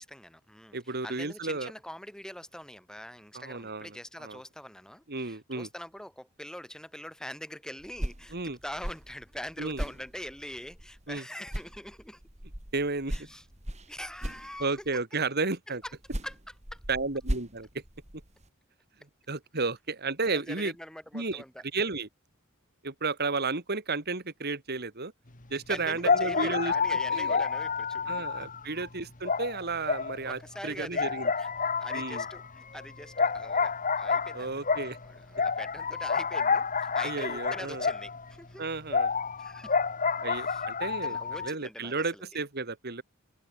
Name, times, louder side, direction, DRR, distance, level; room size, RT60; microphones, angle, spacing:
voice 1, 0.0-12.2 13.1-13.5 13.9-14.8 15.7-15.9 16.2-16.4 16.7-16.8 20.2-21.6 25.7-28.5 30.2-38.7 39.4-39.7 40.3-42.4, equal, 5° left, 4.0 m, -44 dB
voice 2, 0.7-1.7 3.3-3.9 4.2-4.4 5.1-5.7 8.3-8.6 9.6-9.8 11.1-11.2 12.7-13.1 14.6-15.8 16.9-17.7 19.3-20.7 21.1-21.4 21.7-22.1 22.8-25.1 25.5-26.7 27.1-27.4 28.1-31.3 31.9-32.2 34.3-35.0 37.0-37.9 38.6-39.1 40.2-41.2 41.4-43.0, right 3 dB, 50° right, 2.6 m, -32 dB
sound 1, 7.8-11.2 11.5-15.0 15.8-18.5, equal, 35° right, 4.2 m, -39 dB
sound 2, 25.4-25.5 26.0-28.9 29.2-30.6 30.9-38.3 38.9-41.5, left 5 dB, 40° left, 2.0 m, -29 dB
head